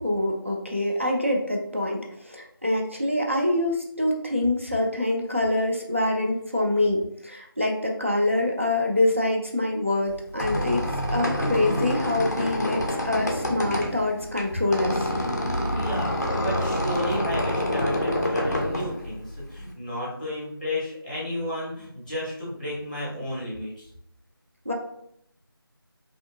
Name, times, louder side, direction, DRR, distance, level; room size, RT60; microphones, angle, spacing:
voice 1, 0.0-10.8 11.1-15.1 24.7-24.8, left 1 dB, 30° right, 0 dB, 0.3 m, -25 dB
Squeak, 10.1-19.7, left 1 dB, 45° left, 0.4 m, -27 dB
voice 2, 15.7-23.9, left 1 dB, 20° left, -5 dB, 0.8 m, -32 dB
2.6 x 2.5 x 2.3 m, 0.72 s
figure-of-eight pair, 175°, 13 cm